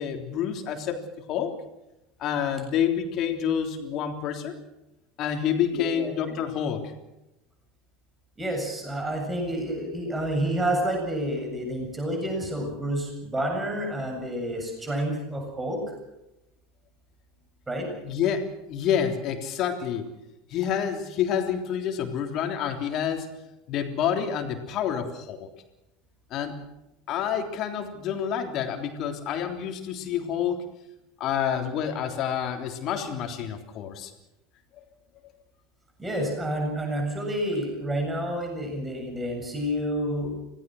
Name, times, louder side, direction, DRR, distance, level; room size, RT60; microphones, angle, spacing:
voice 1, 0.0-1.5 2.2-4.6 5.2-6.9 18.0-20.1 20.5-23.3 23.7-25.5 26.3-26.5 27.1-30.7 31.2-34.1, left 8 dB, 45° left, 4 dB, 3.4 m, -28 dB
voice 2, 5.7-6.1 8.4-15.8 17.7-17.9 36.0-40.3, right 1 dB, 15° right, 3 dB, 7.6 m, -29 dB
26.0 x 18.0 x 6.4 m, 0.92 s
figure-of-eight pair, 75°, 0 cm